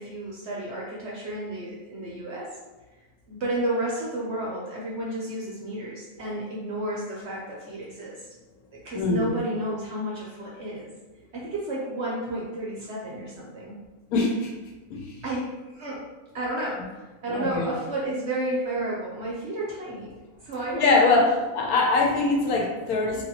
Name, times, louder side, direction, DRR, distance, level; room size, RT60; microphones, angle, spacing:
voice 1, 0.0-2.5 3.3-8.3 8.7-10.9 11.3-13.8 15.2-15.5 15.7-16.0 16.3-20.2 20.4-21.3, right 1 dB, 60° right, -5 dB, 0.8 m, -32 dB
voice 2, 8.9-9.3 14.1-14.5 14.9-15.0 17.3-17.7 20.8-21.3 21.5-23.2, left 3 dB, 75° left, 0 dB, 1.1 m, -22 dB
3.2 x 2.5 x 2.8 m, 1.2 s
omnidirectional pair, 1.6 m